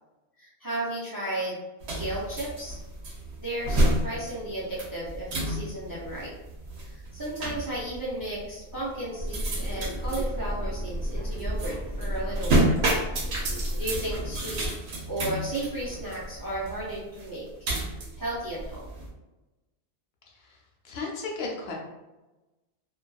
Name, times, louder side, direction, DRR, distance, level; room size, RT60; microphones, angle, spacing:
voice 1, 0.4-1.6 1.9-2.8 3.4-6.3 6.9-13.0 13.5-14.6 15.1-17.7 18.2-18.8, right 1 dB, 30° right, -7 dB, 0.4 m, -34 dB
sound 1, 1.8-19.1, right 1 dB, 75° right, 0.9 m, -30 dB
sound 2, 9.2-14.7, equal, 15° left, 0.8 m, -32 dB
voice 2, 20.3-21.7, left 3 dB, 70° left, -1 dB, 0.8 m, -36 dB
2.6 x 2.2 x 2.2 m, 1.1 s
omnidirectional pair, 1.1 m